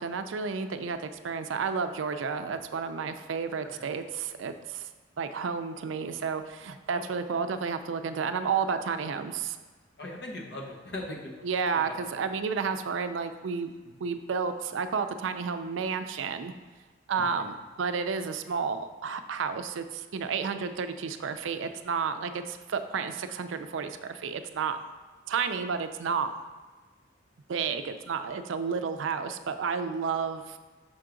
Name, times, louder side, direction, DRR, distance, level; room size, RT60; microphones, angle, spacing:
voice 1, 0.0-4.9 5.2-9.6 11.4-13.7 14.0-16.5 17.1-24.8 25.3-26.3 27.5-30.6, right 5 dB, 80° right, 9 dB, 0.4 m, -31 dB
voice 2, 10.0-11.5 11.8-11.9 17.2-17.3, left 1 dB, 55° left, -1 dB, 1.0 m, -39 dB
6.3 x 4.6 x 3.8 m, 1.3 s
head